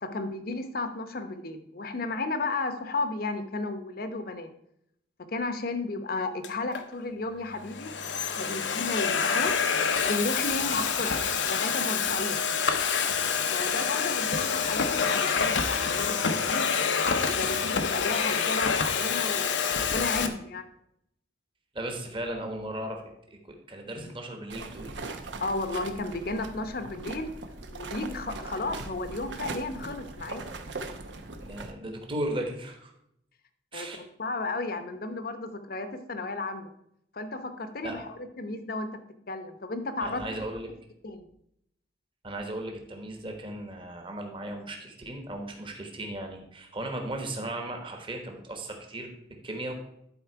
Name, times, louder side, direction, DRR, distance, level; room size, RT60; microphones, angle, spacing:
voice 1, 0.0-4.5 5.3-7.9 8.4-9.6 10.0-11.1 11.5-12.4 13.5-20.7 25.4-27.3 27.7-30.5 33.7-36.7 37.1-38.0 38.4-38.9 39.3-40.5 41.0-41.2, left 2 dB, 55° left, 9 dB, 0.8 m, -33 dB
Domestic sounds home sounds, 6.4-6.8 7.6-20.3, left 6 dB, 80° left, 0.8 m, -27 dB
voice 2, 21.7-24.9 31.4-32.9 33.7-34.0 37.8-37.9 40.0-40.7 42.2-49.1 49.4-49.7, right 1 dB, 30° right, 3 dB, 1.2 m, -36 dB
sound 1, 24.5-31.7, right 3 dB, 80° right, 0.8 m, -40 dB
11.0 x 4.4 x 4.5 m, 0.77 s
head